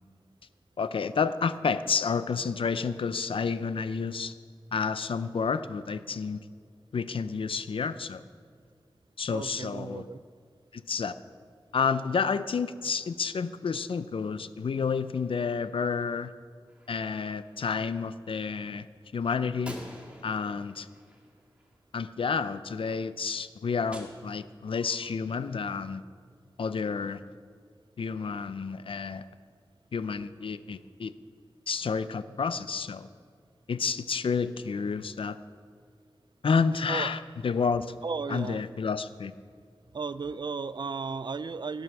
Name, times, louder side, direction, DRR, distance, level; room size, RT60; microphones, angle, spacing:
voice 1, 0.8-4.3 4.7-6.4 6.9-8.2 9.2-10.1 10.7-11.2 11.7-16.3 16.9-18.9 19.1-19.8 20.2-20.9 21.9-26.0 26.6-27.2 28.0-29.3 29.9-31.1 31.7-33.1 33.7-35.4 36.4-37.9 38.3-39.3, left 5 dB, 85° left, 13 dB, 0.5 m, -30 dB
voice 2, 9.3-10.2 36.9-37.2 38.0-38.6 39.9-41.8, right 4 dB, 55° right, 15 dB, 0.4 m, -35 dB
Gunshot gunfire, 16.7-17.7 19.7-22.0 23.9-24.9, equal, 15° right, 2.4 m, -48 dB
17.5 x 7.8 x 6.0 m, 2.1 s
wide cardioid pair, 65°, 9 cm